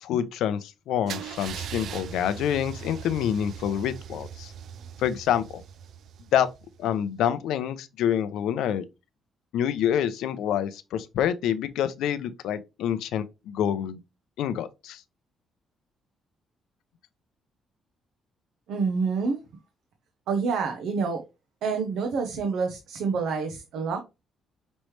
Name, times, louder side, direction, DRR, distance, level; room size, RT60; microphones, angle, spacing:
voice 1, 0.0-4.5 5.0-5.6 6.3-6.5 6.8-8.8 9.5-14.0 14.4-15.0, left 9 dB, 85° left, 0.5 m, -27 dB
Car / Engine starting / Idling, 1.1-6.9, right 8 dB, 60° right, 0.3 m, -40 dB
voice 2, 18.7-19.4 20.3-21.2 21.6-24.0, right 5 dB, 75° right, 0.8 m, -27 dB
5.3 x 3.1 x 3.1 m
cardioid pair, 155°, 0 cm